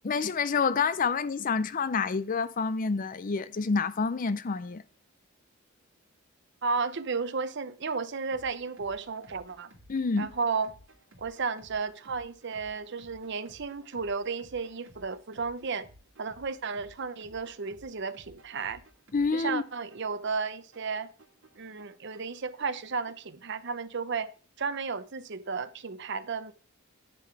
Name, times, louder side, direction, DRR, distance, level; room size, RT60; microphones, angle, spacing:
voice 1, 0.0-4.8 9.9-10.3 19.1-19.6, left 5 dB, 40° left, 0.5 m, -28 dB
voice 2, 6.6-9.7 10.2-10.7 11.2-15.9 16.2-18.8 19.3-21.1 21.6-24.3 24.6-26.5, right 4 dB, 55° right, 0.7 m, -33 dB
sound 1, 8.3-23.3, right 1 dB, 75° right, 2.3 m, -57 dB
10.5 x 3.8 x 5.9 m
head